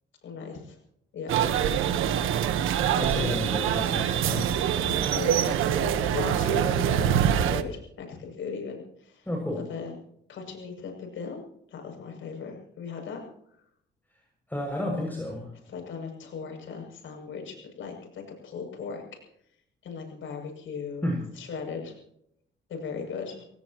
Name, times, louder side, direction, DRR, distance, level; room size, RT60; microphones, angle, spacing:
voice 1, 0.2-0.8 1.1-1.4 3.1-3.3 4.8-10.0 10.3-11.4 11.7-13.2 15.7-19.0 19.8-21.1 21.4-21.9 22.7-23.4, left 5 dB, 75° left, 2 dB, 7.5 m, -38 dB
sound 1, 1.3-7.6, right 9 dB, 90° right, 1.3 m, -25 dB
voice 2, 3.0-4.5 9.2-9.6 14.5-15.5 21.0-21.2, left 1 dB, 10° left, -1 dB, 6.9 m, -31 dB
27.5 x 17.5 x 3.1 m, 0.72 s
cardioid pair, 80°, 20 cm